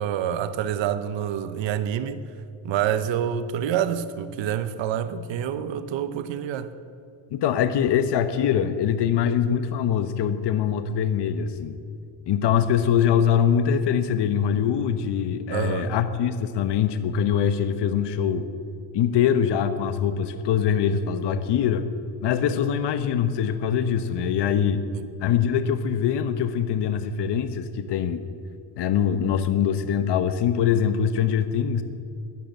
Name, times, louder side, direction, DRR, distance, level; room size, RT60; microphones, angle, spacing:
voice 1, 0.0-2.2 2.6-6.7 15.5-16.0, right 9 dB, 65° right, 0.9 m, -27 dB
voice 2, 7.3-11.8 12.3-18.5 18.9-21.9 22.2-24.8 25.2-28.2 28.8-31.8, left 8 dB, 55° left, 1.0 m, -23 dB
13.0 x 10.5 x 8.9 m
cardioid pair, 110°, 49 cm